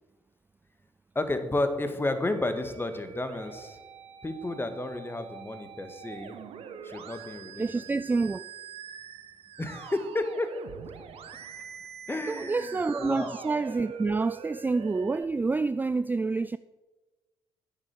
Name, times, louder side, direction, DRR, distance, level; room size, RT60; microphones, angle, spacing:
voice 1, 1.1-3.8 4.2-6.4 6.8-7.8 9.6-10.5 12.1-13.3, left 2 dB, 20° left, 1.7 m, -32 dB
Musical instrument, 2.2-15.2, right 8 dB, 55° right, 1.1 m, -44 dB
voice 2, 7.6-8.4 12.3-16.6, right 3 dB, 15° right, 0.3 m, -28 dB
9.8 x 8.5 x 7.5 m
figure-of-eight pair, 40°, 12 cm